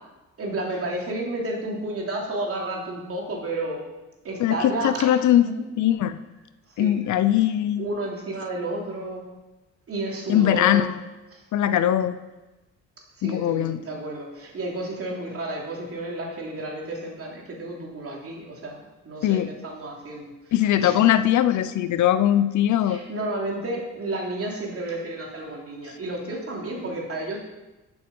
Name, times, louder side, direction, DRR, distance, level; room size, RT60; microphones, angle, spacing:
voice 1, 0.4-3.8 4.2-5.1 5.4-5.6 6.7-7.0 7.8-9.2 9.9-10.9 11.3-11.4 11.7-11.9 13.2-20.5 20.8-21.0 22.8-27.4, right 1 dB, 50° right, -1 dB, 3.1 m, -31 dB
voice 2, 4.4-5.4 5.8-6.2 6.8-7.9 10.3-10.9 11.5-12.2 13.2-13.8 19.2-19.5 20.5-23.0, left 11 dB, 75° left, 12 dB, 0.7 m, -20 dB
11.5 x 7.1 x 5.4 m, 1.1 s
cardioid pair, 90°, 30 cm